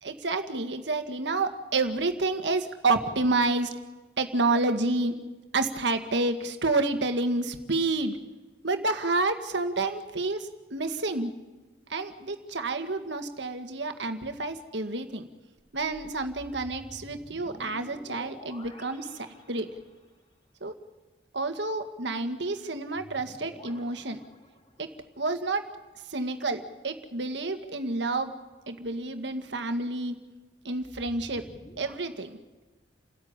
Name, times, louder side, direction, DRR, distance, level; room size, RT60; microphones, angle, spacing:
voice 1, 0.0-3.7 4.2-5.1 5.5-8.2 8.6-11.3 11.9-15.3 15.7-19.7 20.6-20.8 21.3-24.2 24.8-24.9 25.2-25.7 26.1-28.3 28.7-30.1 30.6-31.5 31.8-32.4, right 3 dB, 65° right, 7 dB, 1.7 m, -29 dB
sound 1, 15.6-20.1 22.9-25.0 30.6-31.9, equal, 30° left, 3.0 m, -50 dB
28.5 x 13.5 x 9.7 m, 1.2 s
head